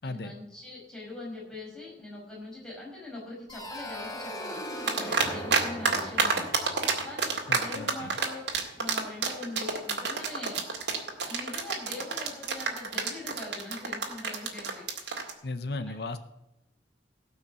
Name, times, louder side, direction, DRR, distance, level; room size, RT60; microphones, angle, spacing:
voice 1, 0.0-6.5 7.0-8.5 8.7-10.6 11.2-14.8 15.9-16.0, left 2 dB, 5° left, -5 dB, 5.3 m, -42 dB
sound 1, 3.5-8.2, equal, 20° left, 1.8 m, -40 dB
sound 2, 4.9-5.6 5.9-15.3, right 5 dB, 70° right, 2.1 m, -27 dB
voice 2, 7.5-8.1 15.4-16.2, left 2 dB, 60° left, 11 dB, 0.7 m, -35 dB
17.5 x 5.8 x 6.9 m, 0.89 s
head